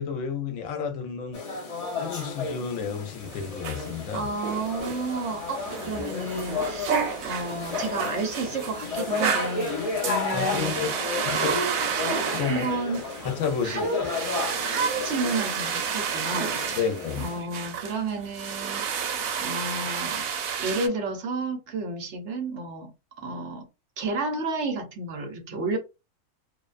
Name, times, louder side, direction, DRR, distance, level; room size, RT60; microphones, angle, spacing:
voice 1, 0.0-1.4 2.0-4.3 10.3-10.9 11.3-11.6 12.3-12.8 13.2-13.8 16.7-17.2, left 6 dB, 80° left, 1.0 m, -30 dB
sound 1, 1.3-17.4, left 4 dB, 45° left, 0.4 m, -33 dB
sound 2, 3.2-20.9, right 7 dB, 90° right, 1.0 m, -31 dB
voice 2, 4.1-7.0 7.2-11.5 12.5-13.1 13.6-14.1 14.6-16.9 17.2-20.3 20.6-22.9 23.2-23.7 24.0-25.8, right 3 dB, 65° right, 0.9 m, -31 dB
2.5 x 2.1 x 2.4 m
omnidirectional pair, 1.4 m